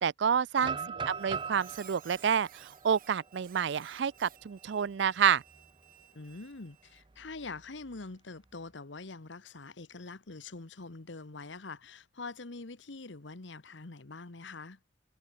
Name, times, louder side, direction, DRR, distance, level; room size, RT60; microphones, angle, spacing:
voice 1, 0.0-0.8 1.1-5.4, right 7 dB, 75° right, 0.4 m, -29 dB
sound 1, 0.5-4.5 4.9-5.0 5.5-5.8 7.1-8.0, right 5 dB, 25° right, 0.5 m, -41 dB
Squeak, 1.1-7.0, right 11 dB, 45° right, 2.9 m, -57 dB
voice 2, 6.1-14.8, left 3 dB, 80° left, 1.2 m, -44 dB
head